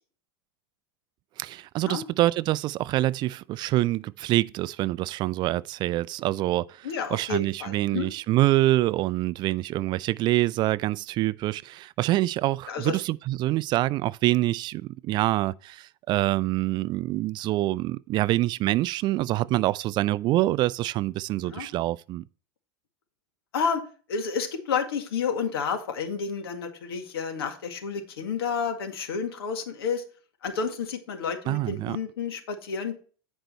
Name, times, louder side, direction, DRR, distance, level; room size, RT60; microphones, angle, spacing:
voice 1, 1.4-22.2 31.5-32.0, right 16 dB, 40° right, 0.3 m, -26 dB
voice 2, 6.8-8.1 12.7-13.0 21.4-21.7 23.5-23.8 24.1-30.0 30.4-32.9, left 6 dB, 85° left, 1.9 m, -30 dB
10.0 x 5.2 x 4.3 m
supercardioid pair, 120°, 12 cm